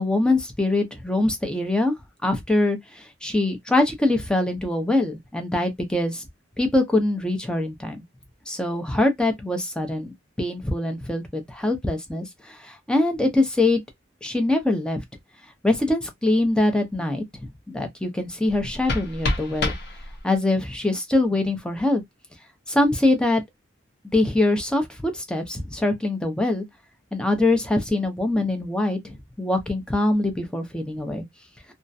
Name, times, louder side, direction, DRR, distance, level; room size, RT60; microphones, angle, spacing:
voice 1, 0.0-1.9 2.2-2.8 3.2-6.2 6.6-8.0 8.5-13.8 14.2-15.0 15.6-17.2 17.7-19.7 20.2-22.0 22.7-23.4 24.1-26.6 27.1-29.0 29.4-31.2, left 2 dB, 5° left, 0.5 m, -23 dB
sound 1, 18.5-20.5, left 2 dB, 55° left, 0.6 m, -29 dB
2.3 x 2.1 x 2.6 m
head